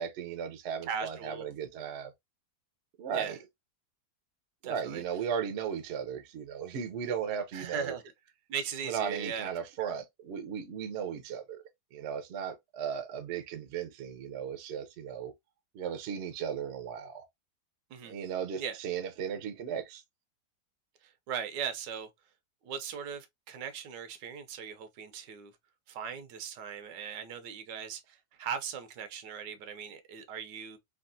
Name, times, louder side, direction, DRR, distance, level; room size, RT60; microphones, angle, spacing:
voice 1, 0.0-2.1 3.0-3.4 4.6-7.9 8.8-11.6 11.9-15.3 15.7-17.2 18.0-20.0, right 7 dB, 65° right, 0.7 m, -36 dB
voice 2, 0.9-1.4 3.1-3.4 4.6-5.0 7.5-8.0 8.5-9.5 9.8-9.9 17.9-18.2 18.6-18.8 21.0-22.1 22.6-25.5 25.9-30.8, right 7 dB, 85° right, 1.3 m, -38 dB
3.5 x 2.4 x 2.5 m
omnidirectional pair, 1.8 m